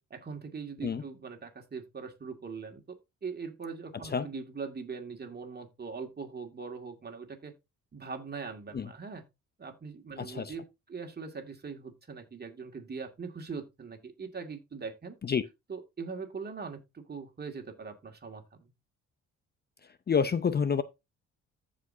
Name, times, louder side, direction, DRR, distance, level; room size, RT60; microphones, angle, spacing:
voice 1, 0.0-3.0 3.2-7.5 7.9-9.2 9.6-15.2 15.7-18.7, right 5 dB, 35° right, 2.3 m, -41 dB
voice 2, 10.2-10.5 15.2-15.4 20.1-20.8, left 6 dB, 35° left, 0.7 m, -28 dB
14.5 x 5.1 x 2.8 m
cardioid pair, 90°, 30 cm